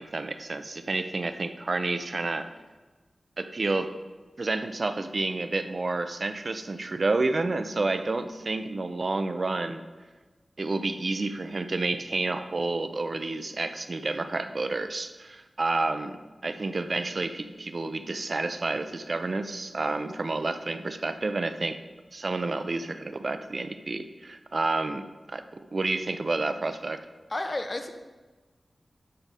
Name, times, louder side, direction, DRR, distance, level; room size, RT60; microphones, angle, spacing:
voice 1, 0.0-2.5 3.4-3.9 4.4-9.8 10.6-16.2 16.4-21.8 22.1-27.0, right 3 dB, 50° right, 10 dB, 0.5 m, -30 dB
voice 2, 27.3-27.9, left 2 dB, 35° left, 7 dB, 0.8 m, -31 dB
12.0 x 4.1 x 5.4 m, 1.2 s
wide cardioid pair, 90°, 0 cm